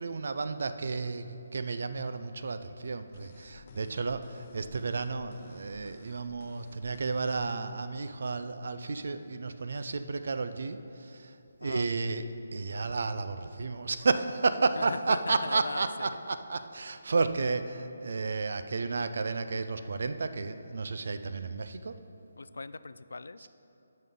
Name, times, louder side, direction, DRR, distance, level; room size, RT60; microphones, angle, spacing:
voice 1, 0.0-11.4 11.6-12.2 12.5-21.9, right 4 dB, 60° right, 10 dB, 0.5 m, -32 dB
sound 1, 3.1-7.5, left 4 dB, 30° left, 0.5 m, -55 dB
voice 2, 3.6-4.0 11.6-11.9 14.8-16.2 22.4-23.5, left 3 dB, 85° left, 14 dB, 0.3 m, -40 dB
12.5 x 5.5 x 3.8 m, 2.8 s
hypercardioid pair, 170°, 0 cm